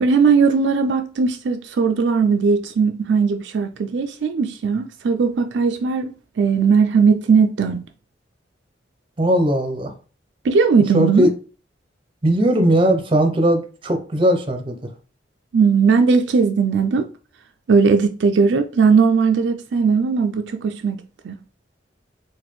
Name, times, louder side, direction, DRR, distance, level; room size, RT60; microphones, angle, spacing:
voice 1, 0.0-7.8 10.4-11.3 15.5-17.1 17.7-21.0 21.2-21.4, right 5 dB, 75° right, 0.4 m, -18 dB
voice 2, 9.2-9.9 10.9-11.3 12.2-14.8, right 1 dB, 30° right, 0.6 m, -18 dB
4.1 x 2.5 x 3.1 m
head